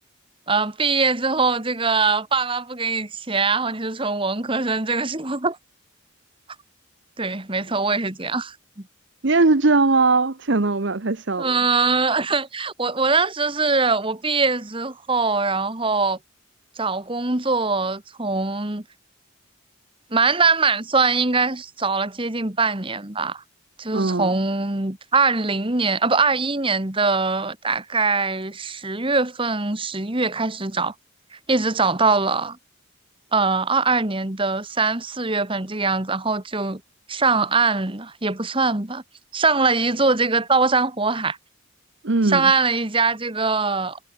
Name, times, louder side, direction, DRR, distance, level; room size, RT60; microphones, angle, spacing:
voice 1, 0.5-5.6 7.2-8.5 11.4-16.2 16.8-18.8 20.1-23.4 23.8-30.9 31.5-32.6 33.3-36.8 37.1-39.0 39.3-41.4 42.2-44.0, right 4 dB, 25° right, 1.7 m, -22 dB
voice 2, 9.2-11.6 23.9-24.3 42.0-42.5, right 3 dB, 55° right, 1.0 m, -20 dB
head